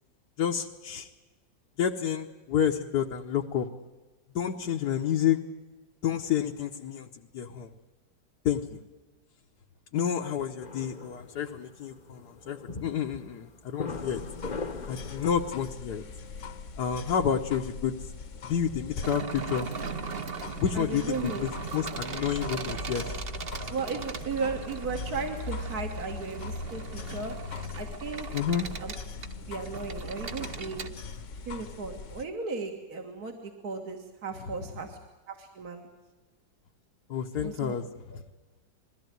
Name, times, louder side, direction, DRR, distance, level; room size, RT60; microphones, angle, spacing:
voice 1, 0.4-1.1 1.8-3.7 4.4-5.4 6.0-7.7 8.5-8.8 9.9-14.2 14.9-16.0 16.8-18.0 18.4-19.7 20.6-23.1 28.3-28.7 37.1-37.9 38.1-38.2, left 8 dB, 70° left, 1 dB, 1.6 m, -29 dB
sound 1, 10.6-15.6, left 4 dB, 30° left, 1.0 m, -40 dB
sound 2, 13.9-32.2, left 4 dB, 50° left, 1.3 m, -40 dB
sound 3, 19.0-30.9, right 6 dB, 40° right, 1.0 m, -39 dB
voice 2, 20.7-21.4 23.7-27.3 27.8-28.3 28.8-28.9 29.5-30.9 31.5-35.0 35.3-35.9 37.4-37.8, right 4 dB, 60° right, 3 dB, 2.4 m, -35 dB
21.5 x 15.5 x 9.3 m, 1.2 s
omnidirectional pair, 1.8 m